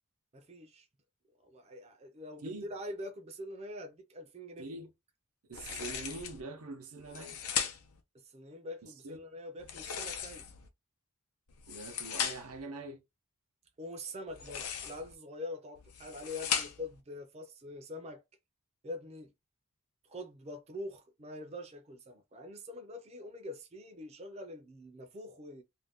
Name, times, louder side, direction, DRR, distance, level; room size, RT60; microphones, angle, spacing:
voice 1, 0.3-0.9 1.4-4.7 8.3-10.4 13.8-18.2 18.8-19.3 20.1-25.6, left 1 dB, 30° right, 0.4 m, -44 dB
voice 2, 4.6-4.9 5.5-7.4 8.8-9.2 11.7-13.0, right 3 dB, 85° right, 0.7 m, -44 dB
sound 1, 5.5-6.4 7.0-8.0 9.6-10.7 11.5-12.6 14.3-15.1 15.8-17.0, left 7 dB, 85° left, 0.6 m, -37 dB
2.5 x 2.2 x 3.5 m
head